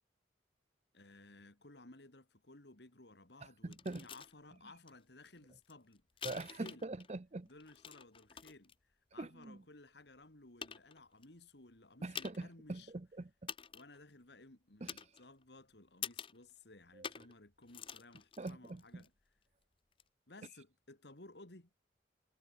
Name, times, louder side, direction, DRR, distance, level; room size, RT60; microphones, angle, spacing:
voice 1, 0.9-6.0 6.5-6.8 7.4-12.9 13.7-19.1 20.3-21.7, left 2 dB, 65° left, 2.3 m, -58 dB
voice 2, 3.6-4.0 6.2-7.5 9.2-9.6 12.0-13.5 14.8-15.0 16.9-17.1 18.4-19.0, right 2 dB, 35° right, 0.6 m, -43 dB
sound 1, 3.7-4.3 4.9-5.0 5.2-7.1 7.5-8.7 9.4-9.5 10.1-10.2 10.6-11.2 12.1-12.5 12.8-12.9 13.5-14.0 14.9-15.5 16.0-16.4 17.0-17.4 17.6-19.1 19.9-20.0, left 8 dB, 30° left, 0.6 m, -47 dB
head